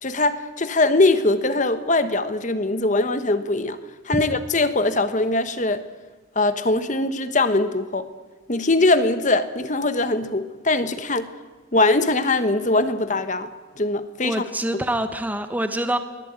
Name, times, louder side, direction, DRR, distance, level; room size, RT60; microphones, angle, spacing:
voice 1, 0.0-3.8 4.0-5.8 6.3-8.1 8.5-11.3 11.7-13.5 13.8-14.4, left 2 dB, 40° left, 11 dB, 1.3 m, -21 dB
voice 2, 14.2-16.0, right 1 dB, 10° right, 8 dB, 1.2 m, -25 dB
23.0 x 18.0 x 9.0 m, 1.3 s
head